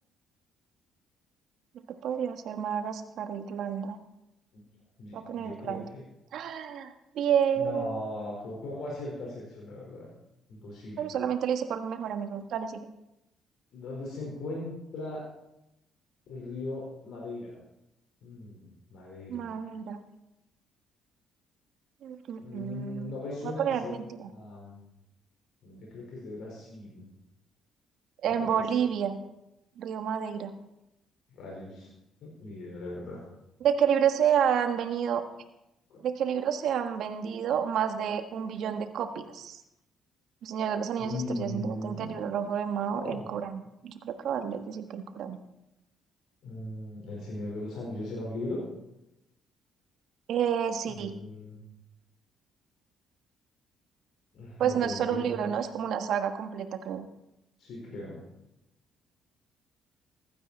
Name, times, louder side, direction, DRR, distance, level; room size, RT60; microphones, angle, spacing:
voice 1, 2.0-4.0 5.1-5.9 6.3-8.0 11.0-12.8 19.3-20.0 22.0-23.1 23.4-24.3 28.2-29.2 29.8-30.5 33.6-35.2 36.0-39.6 40.4-45.4 50.3-51.2 54.6-57.1, right 8 dB, 65° right, 8 dB, 1.4 m, -30 dB
voice 2, 5.0-6.0 7.5-10.1 10.5-11.1 13.7-15.2 16.3-17.6 18.2-19.4 22.4-24.0 24.3-24.8 25.6-27.0 28.3-28.8 31.3-31.9 32.2-33.2 35.9-36.0 41.0-42.2 42.9-43.2 46.4-48.6 50.9-51.6 54.3-55.5 57.6-58.2, left 2 dB, 65° left, -3 dB, 4.9 m, -38 dB
15.5 x 12.5 x 4.4 m, 0.90 s
hypercardioid pair, 55°, 0 cm